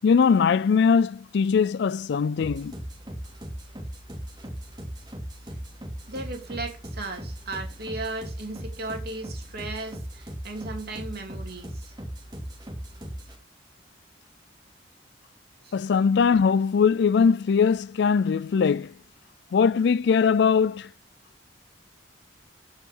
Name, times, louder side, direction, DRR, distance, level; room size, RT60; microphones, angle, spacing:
voice 1, 0.0-2.7 15.7-18.9 19.5-20.9, left 6 dB, 65° left, 0.4 m, -21 dB
sound 1, 2.4-13.4, equal, 25° right, 2.8 m, -38 dB
voice 2, 6.1-11.9 15.6-15.8, right 2 dB, 60° right, 2.6 m, -36 dB
14.0 x 5.6 x 3.8 m
head